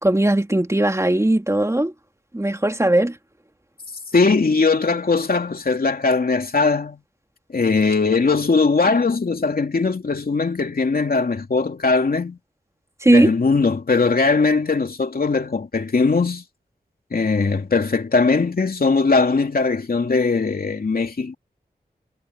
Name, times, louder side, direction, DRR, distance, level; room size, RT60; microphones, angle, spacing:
voice 1, 0.0-1.9 2.3-3.2 13.0-13.3, right 1 dB, 15° right, 2.8 m, -18 dB
voice 2, 4.1-7.0 7.5-12.4 13.1-16.4 17.1-21.3, left 4 dB, 65° left, 2.9 m, -20 dB
wide cardioid pair, 65°, 16 cm